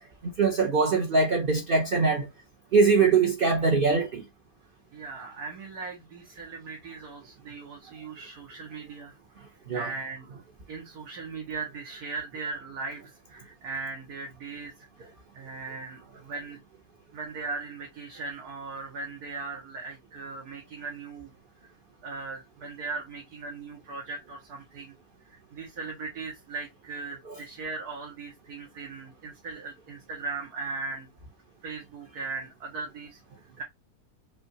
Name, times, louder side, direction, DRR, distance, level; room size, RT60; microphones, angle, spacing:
voice 1, 0.2-2.3 2.7-4.2 9.7-9.9 27.3-27.4, right 4 dB, 45° right, 0.8 m, -22 dB
voice 2, 4.9-9.2 9.7-10.3 10.7-14.7 15.0-16.6 17.1-21.3 22.0-24.9 25.3-31.1 31.6-33.6, right 4 dB, 75° right, 2.1 m, -38 dB
5.5 x 2.7 x 2.7 m
omnidirectional pair, 1.7 m